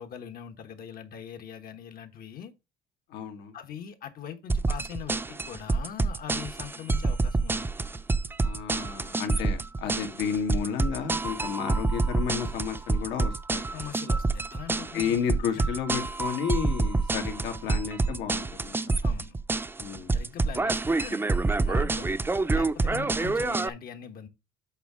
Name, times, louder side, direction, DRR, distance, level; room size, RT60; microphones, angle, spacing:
voice 1, 0.0-2.5 3.5-7.7 9.3-9.4 13.7-15.2 15.5-15.7 17.6-17.8 19.0-19.3 20.1-21.3 21.6-22.2 22.5-24.3, left 8 dB, 60° left, 1.2 m, -42 dB
voice 2, 3.1-3.5 8.4-13.6 14.9-18.9 19.8-20.2 23.0-23.3, left 7 dB, 85° left, 2.1 m, -32 dB
sound 1, 4.5-23.7, right 3 dB, 15° right, 0.6 m, -27 dB
8.1 x 3.6 x 6.1 m
cardioid pair, 110°, 17 cm